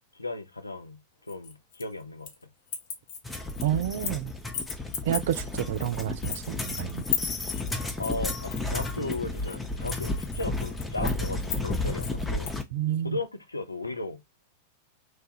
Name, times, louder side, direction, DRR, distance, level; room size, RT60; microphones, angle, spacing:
voice 1, 0.1-1.0 1.3-2.3 8.0-12.5 13.0-14.2, left 2 dB, 85° left, 0.5 m, -35 dB
sound 1, 1.3-2.4 2.7-4.2 4.5-12.6, left 7 dB, 50° left, 0.7 m, -36 dB
sound 2, 3.2-12.6, left 2 dB, 10° left, 0.5 m, -32 dB
voice 2, 3.6-4.3 5.0-7.0 12.7-13.2, right 11 dB, 55° right, 0.3 m, -29 dB
3.1 x 2.2 x 2.8 m
figure-of-eight pair, 90°, 0 cm